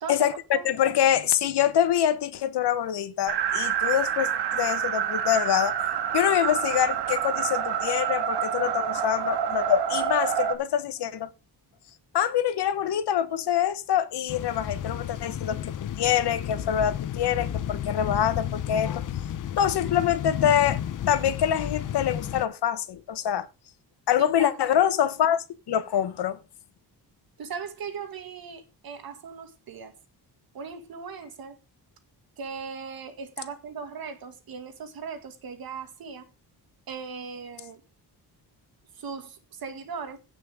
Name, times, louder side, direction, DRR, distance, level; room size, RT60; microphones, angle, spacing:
voice 1, 0.0-0.7 24.2-24.8 27.4-30.0 30.5-31.6 32.4-36.3 36.9-37.8 38.9-40.2, right 6 dB, 60° right, 2.0 m, -38 dB
voice 2, 0.6-5.8 6.1-11.3 12.1-19.0 19.6-20.8 21.1-23.5 24.1-26.4, left 10 dB, 70° left, 1.3 m, -25 dB
sound 1, 3.3-10.6, right 8 dB, 75° right, 1.8 m, -27 dB
sound 2, 14.3-22.5, left 10 dB, 50° left, 0.8 m, -32 dB
16.5 x 6.0 x 3.6 m
wide cardioid pair, 165°, 41 cm